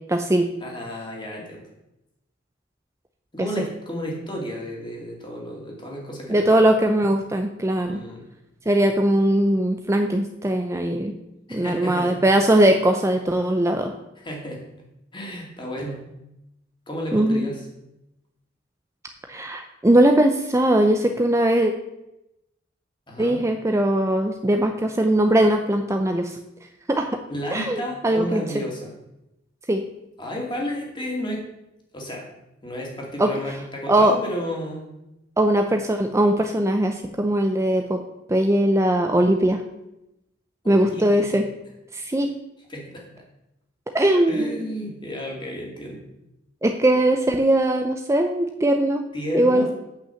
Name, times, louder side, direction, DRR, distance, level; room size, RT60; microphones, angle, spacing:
voice 1, 0.1-0.5 3.4-3.5 6.3-8.0 8.7-11.1 11.5-13.9 17.1-17.5 19.3-21.7 23.2-26.4 26.9-27.2 27.5-28.6 29.7-29.8 33.2-33.3 33.9-34.1 35.4-38.0 38.3-39.6 40.7-41.4 41.9-42.3 43.9-44.7 46.6-49.0 49.3-49.7, right 1 dB, 15° right, 5 dB, 0.5 m, -20 dB
voice 2, 0.6-1.7 3.3-6.5 7.9-8.2 11.5-12.2 14.2-14.6 15.1-16.0 16.9-17.7 23.1-23.4 27.3-28.9 30.2-31.5 31.9-32.3 32.6-34.9 40.6-41.3 42.7-43.0 44.3-46.0 49.1-49.7, equal, 25° left, -1 dB, 2.4 m, -32 dB
8.5 x 5.9 x 7.1 m, 0.90 s
head